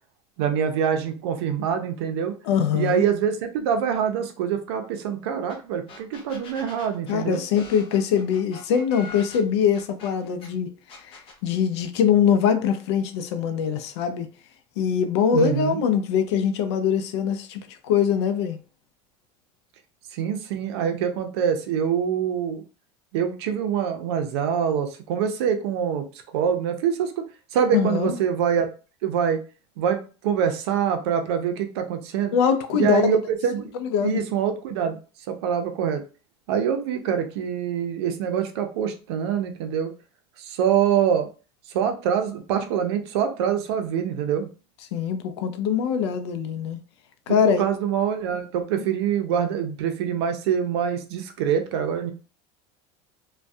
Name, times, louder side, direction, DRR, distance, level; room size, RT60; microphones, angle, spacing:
voice 1, 0.4-2.4 2.7-7.4 15.3-15.8 20.1-22.6 23.1-26.1 26.3-27.2 27.5-28.7 29.0-29.4 29.8-32.3 32.7-33.7 34.0-35.0 35.3-36.0 36.5-39.9 40.4-41.3 41.7-44.5 47.3-52.1, right 8 dB, 85° right, 0.5 m, -25 dB
voice 2, 2.4-3.0 7.1-14.3 14.8-18.6 27.7-28.1 32.3-33.2 33.7-34.2 44.9-46.8 47.3-47.6, left 7 dB, 90° left, 0.4 m, -23 dB
sound 1, 5.5-5.6 5.9-10.5 10.9-11.4, left 3 dB, 40° left, 0.7 m, -43 dB
2.6 x 2.2 x 2.3 m
supercardioid pair, 130°, 14 cm